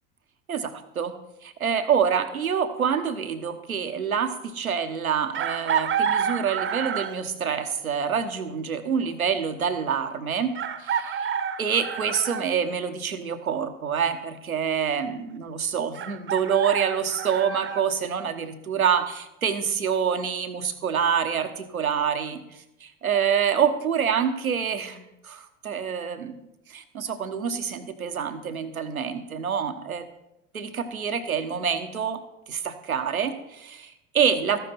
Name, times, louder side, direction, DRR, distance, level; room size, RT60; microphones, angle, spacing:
voice 1, 0.5-1.1 1.4-11.3 11.6-26.3 26.7-30.0 30.5-32.2 32.5-34.6, right 7 dB, 90° right, 8 dB, 1.1 m, -27 dB
Chicken rooster, 5.3-7.3 9.0-9.1 10.5-12.5 15.9-17.8, right 7 dB, 30° right, 0.9 m, -28 dB
14.0 x 11.0 x 4.2 m, 0.87 s
figure-of-eight pair, 75°, 41 cm